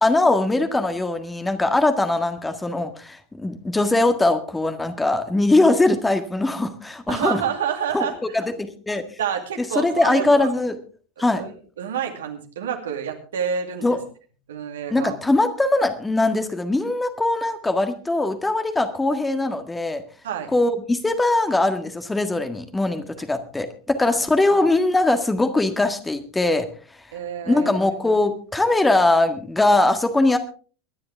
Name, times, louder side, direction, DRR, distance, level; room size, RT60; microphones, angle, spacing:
voice 1, 0.0-7.4 7.9-8.1 8.3-8.4 8.9-9.0 9.8-10.8 11.2-11.4 13.8-14.0 14.9-20.0 20.5-26.7 27.5-30.4, left 2 dB, 10° left, 8 dB, 1.7 m, -21 dB
voice 2, 7.1-8.4 9.2-10.5 11.4-14.0 14.5-15.1 20.2-20.5 23.2-23.3 24.0-24.2 27.1-28.0, right 8 dB, 65° right, 5 dB, 2.4 m, -28 dB
23.5 x 10.5 x 3.5 m, 0.38 s
figure-of-eight pair, 80°, 0 cm